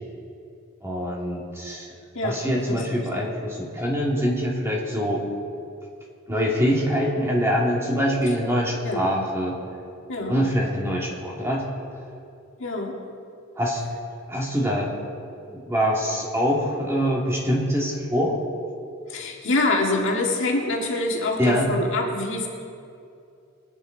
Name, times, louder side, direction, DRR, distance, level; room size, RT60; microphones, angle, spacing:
voice 1, 0.8-1.9 2.2-5.3 6.3-9.6 10.3-11.7 13.6-13.8 14.3-14.9 15.4-18.4 21.4-21.7, equal, 15° right, -3 dB, 2.4 m, -24 dB
voice 2, 2.6-3.1 8.8-9.1 10.1-10.4 12.6-13.0 19.1-22.5, left 2 dB, 65° left, 0 dB, 1.9 m, -25 dB
22.5 x 9.9 x 4.0 m, 2.5 s
head